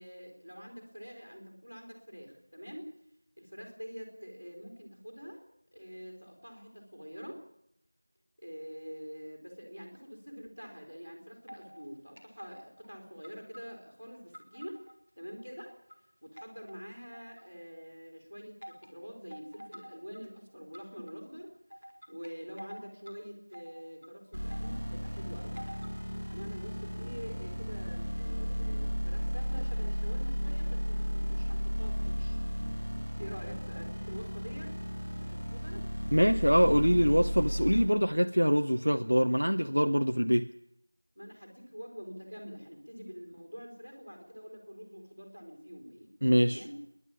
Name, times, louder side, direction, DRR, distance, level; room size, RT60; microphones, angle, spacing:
voice 1, 0.0-2.9 3.4-7.4 8.4-14.8 15.2-15.7 16.2-21.5 22.1-25.7 26.3-32.4 33.2-34.7 35.2-35.9 41.1-46.1 46.4-46.7, equal, 25° right, 3 dB, 3.3 m, -46 dB
sound 1, 11.5-11.9 12.2-12.9 13.2-14.9 15.3-16.0 16.4-17.6 18.6-18.9 19.3-20.3 20.7-21.1 21.7-23.1 23.5-24.9 25.6-26.0, equal, 5° right, 1.3 m, -49 dB
sound 2, 24.3-37.8, equal, 20° left, 5.1 m, -34 dB
voice 2, 36.1-40.5 46.2-46.6, equal, 60° right, 6 dB, 0.8 m, -24 dB
27.5 x 11.0 x 8.7 m, 0.76 s
figure-of-eight pair, 180°, 0 cm